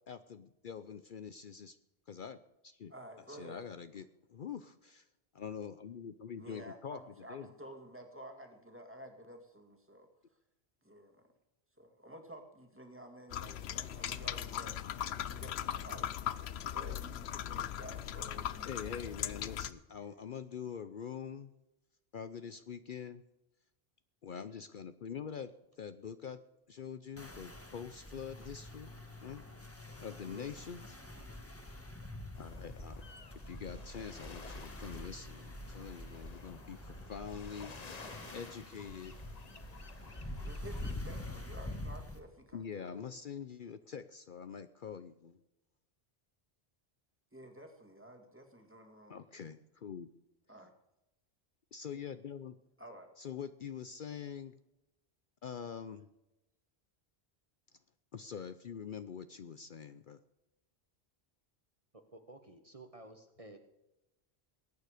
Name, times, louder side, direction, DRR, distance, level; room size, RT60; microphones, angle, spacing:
voice 1, 0.1-1.8 2.1-2.4 2.6-2.9 3.3-5.1 5.3-7.0 7.3-7.5 18.6-21.5 22.1-23.2 24.2-25.5 25.8-26.4 26.7-28.9 29.2-29.4 30.0-31.0 32.4-33.0 33.5-37.7 38.3-39.1 42.5-45.4 49.1-50.1 51.7-52.6 53.2-54.5 55.4-56.1 58.1-60.2, left 7 dB, 55° left, 11 dB, 0.8 m, -45 dB
voice 2, 2.9-3.6 6.4-10.1 10.8-11.2 11.8-14.8 15.3-16.1 16.6-18.7 30.2-30.6 32.4-32.7 40.4-43.0 47.3-49.2 50.5-50.7 52.8-53.1, right 1 dB, 10° right, 4 dB, 2.1 m, -52 dB
sound 1, 13.3-19.7, left 10 dB, 80° left, 0.9 m, -39 dB
sound 2, 27.2-42.2, left 1 dB, 15° left, 1.6 m, -46 dB
sound 3, 32.3-41.0, left 4 dB, 40° left, 1.1 m, -53 dB
voice 3, 61.9-63.6, right 2 dB, 35° right, 6 dB, 1.3 m, -53 dB
20.0 x 9.4 x 5.0 m, 0.91 s
omnidirectional pair, 1.1 m